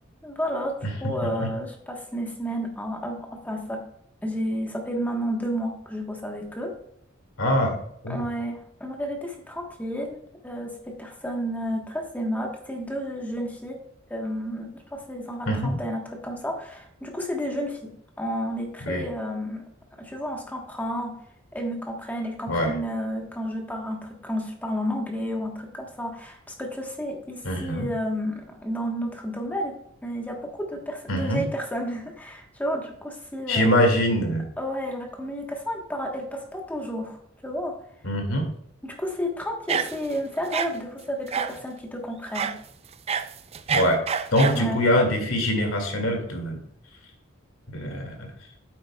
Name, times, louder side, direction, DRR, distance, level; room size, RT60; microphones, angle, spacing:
voice 1, 0.2-3.8 4.2-6.8 8.1-13.8 14.1-19.6 20.0-21.1 21.5-29.7 30.0-33.8 34.6-37.8 38.8-42.5 44.4-44.8, equal, 10° left, 2 dB, 1.1 m, -31 dB
voice 2, 7.4-7.7 8.0-8.2 15.4-15.8 18.8-19.0 22.5-22.7 27.4-27.9 31.1-31.4 33.5-34.4 38.0-38.5 43.7-44.0 44.3-46.6 47.7-48.3, equal, 90° left, 3 dB, 2.1 m, -23 dB
Bulldog Howl Edited, 39.7-40.2 40.5-40.7 41.3-41.6 42.3-42.6 42.9-44.6, right 6 dB, 30° right, 0.4 m, -27 dB
9.0 x 7.9 x 2.2 m, 0.71 s
head